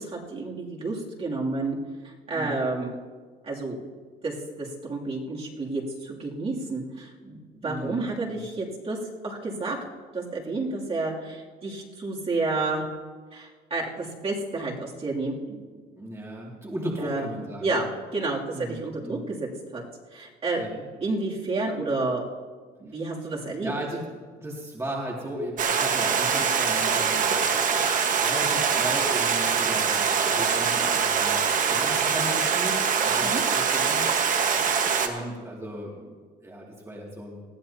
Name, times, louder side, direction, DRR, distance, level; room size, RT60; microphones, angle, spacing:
voice 1, 0.0-1.8 2.0-3.0 3.4-3.8 4.2-9.0 9.2-9.8 10.1-12.9 13.3-15.6 17.0-17.3 17.6-17.9 18.1-19.8 20.1-22.2 22.8-23.7 33.2-33.4, right 3 dB, 35° right, -4 dB, 2.8 m, -30 dB
voice 2, 7.6-8.0 8.3-8.5 15.9-17.8 18.5-19.2 20.6-20.8 22.9-23.0 23.6-24.0 24.4-27.5 28.1-34.1 35.0-37.4, right 1 dB, 15° right, -3 dB, 2.4 m, -36 dB
Stream, 25.6-35.1, right 6 dB, 50° right, 1.4 m, -23 dB
20.0 x 14.0 x 2.9 m, 1.5 s
cardioid pair, 110°, 17 cm